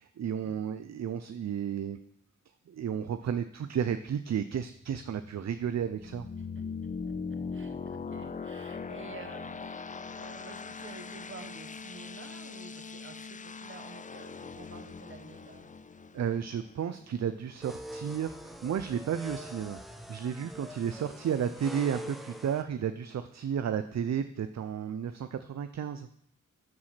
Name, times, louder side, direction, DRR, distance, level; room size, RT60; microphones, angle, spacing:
voice 1, 0.0-2.0 2.7-6.3 16.1-19.8 20.1-26.1, right 8 dB, 60° right, 10 dB, 0.5 m, -33 dB
sound 1, 4.9-17.5, left 5 dB, 25° left, 0.4 m, -41 dB
voice 2, 7.3-15.7, right 4 dB, 40° right, 6 dB, 1.3 m, -50 dB
sound 2, 17.6-22.6, equal, ahead, 0.9 m, -44 dB
13.0 x 4.8 x 4.3 m, 0.67 s
cardioid pair, 70°, 31 cm